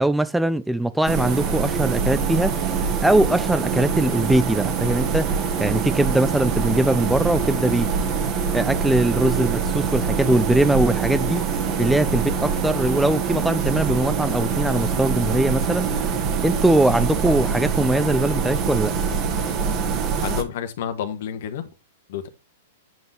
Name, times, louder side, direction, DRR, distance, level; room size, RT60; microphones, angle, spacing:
voice 1, 0.0-2.5 3.0-7.9 8.5-11.4 11.8-16.1 16.4-18.9, right 1 dB, 5° right, 0.4 m, -21 dB
sound 1, 1.0-20.4, right 6 dB, 40° right, 1.8 m, -24 dB
voice 2, 20.2-21.7 22.1-22.3, left 9 dB, 60° left, 1.5 m, -30 dB
9.1 x 5.6 x 3.4 m
hypercardioid pair, 110°, 0 cm